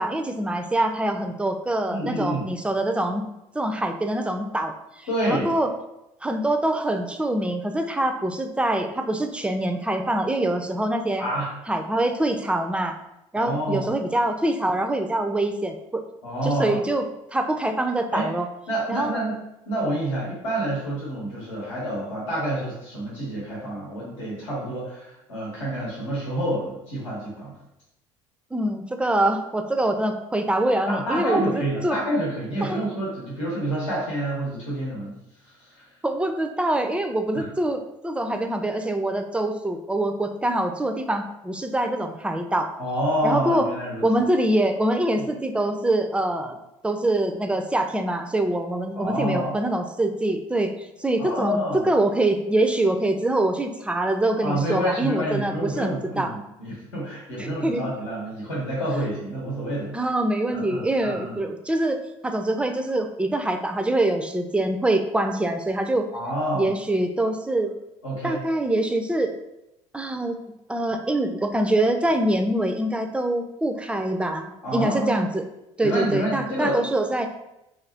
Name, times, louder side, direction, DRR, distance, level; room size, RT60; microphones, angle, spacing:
voice 1, 0.0-3.2 3.5-4.7 5.2-5.7 6.2-11.2 11.7-12.9 13.3-16.0 16.4-17.0 17.3-18.5 18.9-19.3 28.5-32.0 32.6-32.8 36.0-42.7 43.2-43.7 44.0-46.6 46.8-50.7 51.0-56.3 57.4-57.9 59.9-66.1 66.5-67.7 68.2-69.3 69.9-70.4 70.7-74.5 74.7-75.5 75.8-77.3, right 1 dB, 5° right, 6 dB, 0.3 m, -24 dB
voice 2, 1.9-2.4 5.1-5.5 11.2-11.5 13.3-13.9 16.2-16.8 18.1-18.3 18.7-27.5 30.9-35.2 35.6-35.9 37.3-37.5 42.8-44.2 45.1-45.2 48.9-49.6 51.2-51.9 54.4-59.9 60.5-61.4 66.1-66.7 68.0-68.4 74.6-75.3 75.8-76.8, right 1 dB, 85° left, -6 dB, 0.9 m, -28 dB
2.4 x 2.4 x 3.3 m, 0.88 s
hypercardioid pair, 70°, 16 cm